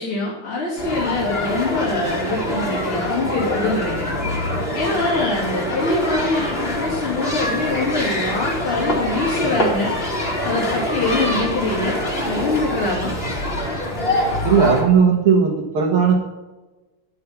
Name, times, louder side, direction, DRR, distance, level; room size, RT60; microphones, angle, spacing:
voice 1, 0.0-4.1 4.7-9.9 10.4-12.0 12.3-13.1, left 2 dB, 75° left, -6 dB, 4.1 m, -24 dB
sound 1, 0.8-14.8, left 1 dB, 25° left, 2.7 m, -24 dB
voice 2, 14.4-16.2, right 6 dB, 80° right, -3 dB, 2.4 m, -16 dB
11.0 x 8.6 x 6.0 m, 1.2 s
omnidirectional pair, 2.4 m